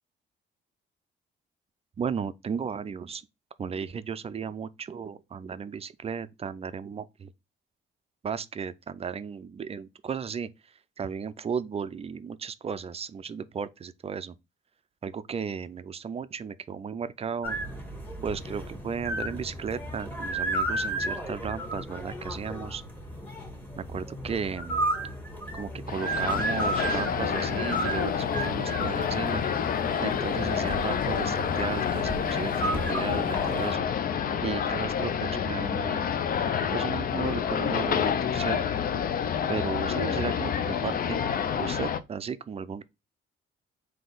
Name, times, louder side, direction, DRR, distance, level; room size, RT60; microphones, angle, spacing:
voice 1, 2.0-3.2 3.6-7.3 8.2-10.5 11.0-14.3 15.0-17.6 18.2-22.8 23.8-24.8 25.5-29.4 30.0-33.8 34.4-36.1 36.7-38.6 39.5-41.2 41.6-42.8, right 6 dB, 30° right, 0.4 m, -35 dB
sound 1, 17.4-33.7, right 1 dB, 10° left, 1.3 m, -33 dB
sound 2, 25.9-42.0, left 8 dB, 45° left, 0.4 m, -28 dB
3.8 x 2.7 x 3.8 m
cardioid pair, 90°, 20 cm